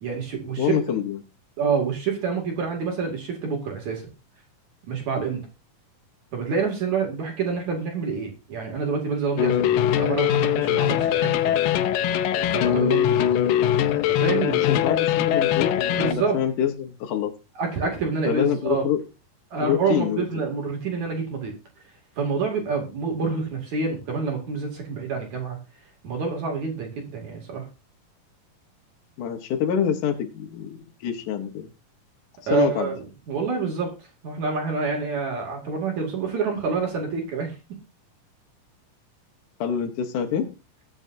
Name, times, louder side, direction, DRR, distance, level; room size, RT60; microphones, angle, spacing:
voice 1, 0.0-0.7 1.6-4.1 4.9-5.4 6.3-11.8 12.5-13.3 14.1-14.7 16.0-16.4 17.6-18.8 19.5-21.5 22.2-25.6 26.0-27.7 32.5-37.6, right 5 dB, 60° right, 1 dB, 3.9 m, -27 dB
voice 2, 0.6-1.2 14.5-17.3 18.3-19.0 19.6-20.2 29.2-31.7 32.5-32.9 39.6-40.5, left 9 dB, 70° left, 3 dB, 2.7 m, -26 dB
sound 1, 9.4-16.1, left 10 dB, 90° left, 2.5 m, -22 dB
21.5 x 7.6 x 2.7 m, 0.30 s
omnidirectional pair, 3.8 m